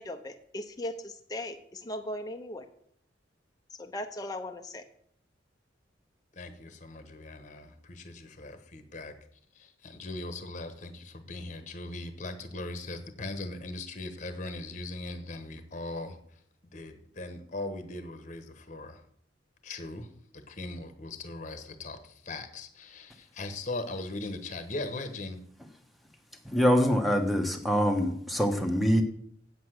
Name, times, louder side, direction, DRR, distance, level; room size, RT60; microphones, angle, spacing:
voice 1, 0.0-2.6 3.8-4.8, left 1 dB, 20° left, 5 dB, 0.7 m, -38 dB
voice 2, 6.3-9.2 9.5-16.4 16.7-19.0 19.6-25.5, left 2 dB, 40° left, 9 dB, 1.1 m, -39 dB
voice 3, 26.4-29.0, equal, ahead, 5 dB, 1.1 m, -24 dB
8.4 x 8.0 x 6.4 m, 0.66 s
head